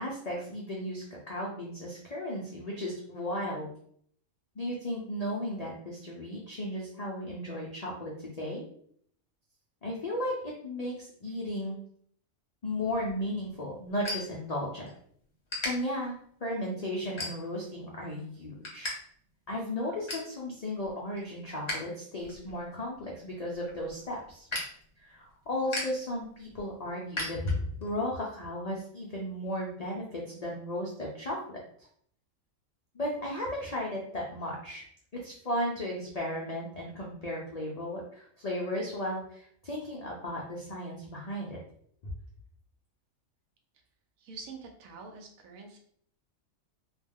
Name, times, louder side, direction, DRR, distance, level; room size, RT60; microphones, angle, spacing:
voice 1, 0.0-3.7 4.6-8.6 9.8-11.8 12.6-14.9 15.6-18.9 19.5-24.5 25.0-31.9 32.9-34.8 35.1-41.6, left 1 dB, 80° left, -3 dB, 0.3 m, -35 dB
sound 1, 12.9-15.0 15.3-15.7 16.3-16.5 17.0-17.7 18.1-18.9 19.2-19.3 19.7-20.3 20.8-21.8 22.1-27.9, left 1 dB, 30° left, 0.7 m, -38 dB
voice 2, 44.2-45.8, right 4 dB, 80° right, 3 dB, 1.0 m, -46 dB
2.4 x 2.2 x 3.4 m, 0.62 s
omnidirectional pair, 1.4 m